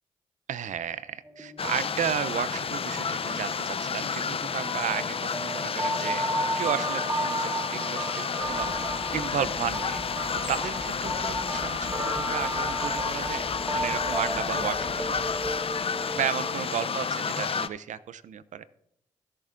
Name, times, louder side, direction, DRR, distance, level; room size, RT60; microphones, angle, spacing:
voice 1, 0.5-6.3 6.6-8.7 9.1-10.0 10.5-15.4 16.1-18.6, right 9 dB, 70° right, 15 dB, 0.6 m, -33 dB
sound 1, 1.3-2.4 2.7-2.9 3.2-17.5, right 1 dB, 15° right, 1.1 m, -34 dB
sound 2, 1.6-17.7, left 6 dB, 45° left, 0.5 m, -31 dB
sound 3, 8.4-16.5, equal, 20° left, 1.8 m, -46 dB
16.5 x 6.9 x 2.5 m, 0.76 s
supercardioid pair, 40°, 13 cm